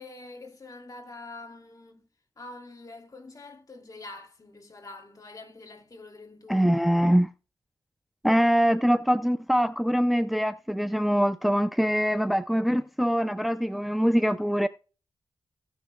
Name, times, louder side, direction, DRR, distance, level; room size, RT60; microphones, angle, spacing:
voice 1, 0.0-2.1 2.4-6.8, left 2 dB, 45° left, 2.5 m, -45 dB
voice 2, 6.5-7.3 8.2-14.7, equal, ahead, 0.5 m, -23 dB
16.0 x 6.3 x 2.3 m
cardioid pair, 55°, 9 cm